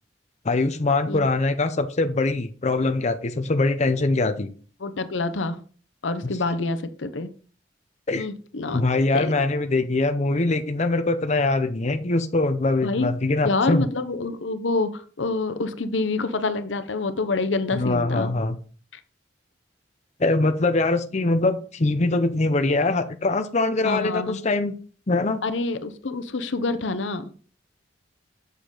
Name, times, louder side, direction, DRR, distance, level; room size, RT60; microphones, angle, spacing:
voice 1, 0.4-4.5 6.2-6.3 8.1-8.3 8.7-13.9 17.7-18.6 20.2-24.7 25.1-25.4, left 2 dB, 40° left, 8 dB, 0.7 m, -23 dB
voice 2, 4.8-5.6 6.0-7.3 8.2-8.8 9.1-9.3 12.8-13.1 13.4-18.3 23.8-24.4 25.4-27.3, left 3 dB, 90° left, 11 dB, 0.8 m, -27 dB
7.5 x 6.7 x 3.9 m, 0.40 s
head